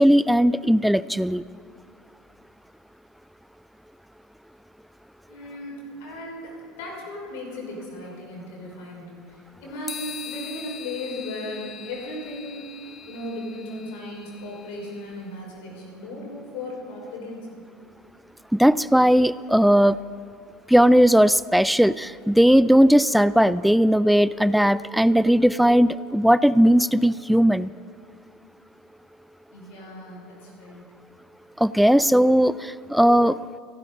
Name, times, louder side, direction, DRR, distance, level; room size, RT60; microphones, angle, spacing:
voice 1, 0.0-1.4 18.5-20.0 20.7-27.7 31.6-33.4, equal, ahead, 18 dB, 0.3 m, -18 dB
voice 2, 5.3-17.5 29.5-30.9, left 1 dB, 55° left, -1 dB, 5.5 m, -36 dB
sound 1, 9.9-15.2, left 8 dB, 25° left, 0.7 m, -41 dB
29.5 x 12.0 x 4.1 m, 2.1 s
figure-of-eight pair, 75°, 0 cm